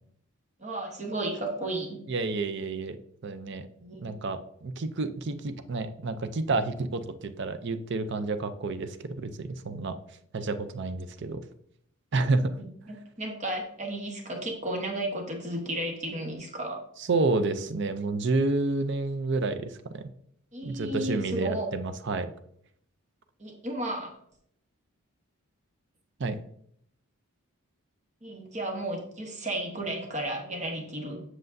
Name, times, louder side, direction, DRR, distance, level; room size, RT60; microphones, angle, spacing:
voice 1, 0.6-2.0 3.8-4.2 12.6-16.8 20.5-21.7 23.4-24.1 28.2-31.2, right 1 dB, 30° right, 1 dB, 1.1 m, -33 dB
voice 2, 2.1-3.0 3.2-3.7 4.0-10.0 10.3-11.4 12.1-12.5 17.1-20.1 20.6-22.3 26.2-26.4, right 3 dB, 50° right, 10 dB, 0.5 m, -29 dB
7.8 x 6.3 x 2.6 m, 0.68 s
head